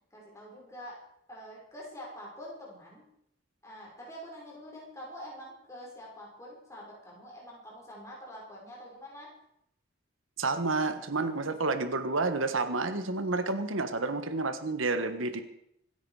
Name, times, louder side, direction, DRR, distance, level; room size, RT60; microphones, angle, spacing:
voice 1, 0.1-1.0 1.3-3.0 3.6-9.3, equal, 15° left, -4 dB, 5.4 m, -46 dB
voice 2, 10.4-15.4, right 3 dB, 75° right, 9 dB, 1.5 m, -30 dB
25.5 x 10.0 x 4.9 m, 0.76 s
head